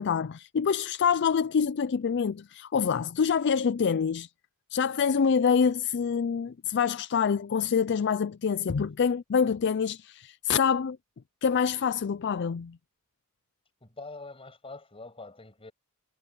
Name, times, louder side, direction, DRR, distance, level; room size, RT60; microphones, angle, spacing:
voice 1, 0.0-4.3 4.7-11.0 11.4-12.8, left 6 dB, 55° left, 0.4 m, -26 dB
voice 2, 13.8-15.7, left 3 dB, 25° left, 6.5 m, -44 dB
head